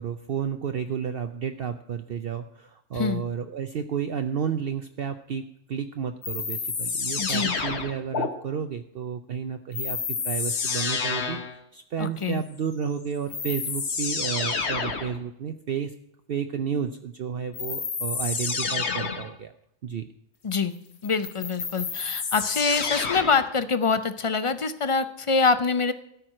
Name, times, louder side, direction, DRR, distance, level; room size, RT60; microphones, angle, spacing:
voice 1, 0.0-15.9 16.3-19.5 19.8-20.1, right 7 dB, 60° right, 8 dB, 0.7 m, -31 dB
sound 1, 6.2-8.3 9.7-11.6 12.8-12.9 13.3-15.2 17.5-19.3 21.0-23.5, left 5 dB, 60° left, 1.4 m, -29 dB
voice 2, 7.2-7.5 12.0-12.4 20.4-20.7 21.0-25.9, left 4 dB, 40° left, 12 dB, 0.5 m, -25 dB
13.5 x 4.7 x 8.7 m, 0.75 s
omnidirectional pair, 1.3 m